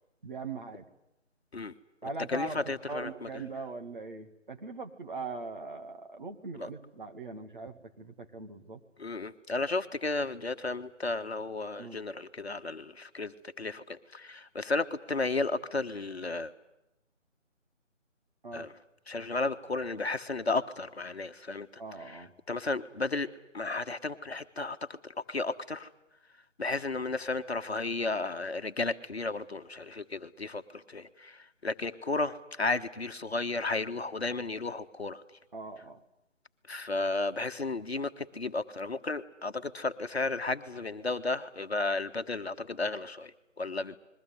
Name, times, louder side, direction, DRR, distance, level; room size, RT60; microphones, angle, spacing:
voice 1, 0.2-0.8 2.0-2.6 2.9-8.8 11.8-12.0 18.4-18.7 21.8-22.3 35.5-36.0, right 3 dB, 40° right, 5 dB, 2.3 m, -40 dB
voice 2, 2.3-3.3 6.6-6.7 9.0-16.5 18.5-18.7 19.1-21.7 22.1-22.2 22.5-23.3 23.5-24.8 25.0-25.9 26.6-35.2 36.7-44.0, left 3 dB, 55° left, 8 dB, 1.4 m, -33 dB
29.0 x 22.0 x 8.1 m, 0.87 s
figure-of-eight pair, 155°, 37 cm